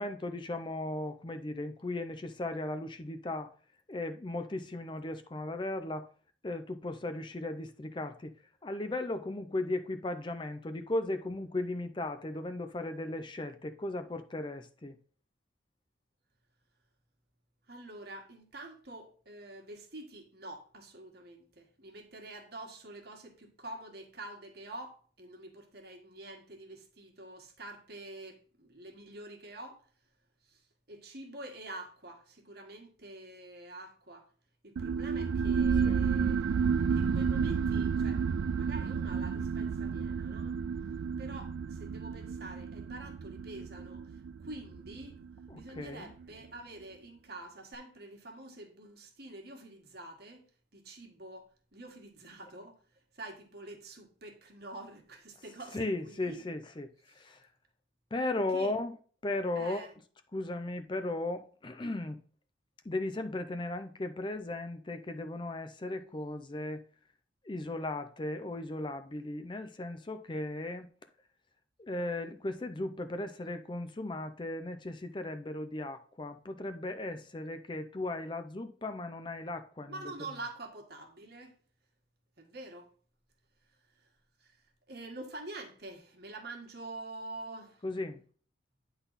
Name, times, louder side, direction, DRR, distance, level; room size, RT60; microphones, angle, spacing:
voice 1, 0.0-3.5 3.9-6.1 6.4-8.3 8.6-15.0 35.8-36.0 45.5-46.1 55.7-57.5 58.1-58.9 59.2-59.9 60.3-62.2 62.8-66.8 67.4-70.9 71.8-80.1 87.8-88.2, left 2 dB, 25° left, 0.5 m, -36 dB
voice 2, 17.7-29.8 30.5-30.6 30.9-34.3 34.6-38.2 38.6-40.6 41.2-45.2 45.5-50.4 50.7-52.8 53.1-56.5 58.5-58.7 59.5-59.9 79.9-81.6 82.4-82.9 84.4-84.6 84.9-87.8, right 2 dB, 55° right, 1.7 m, -47 dB
sound 1, 34.8-45.9, right 6 dB, 80° right, 0.3 m, -31 dB
9.6 x 4.0 x 4.0 m
head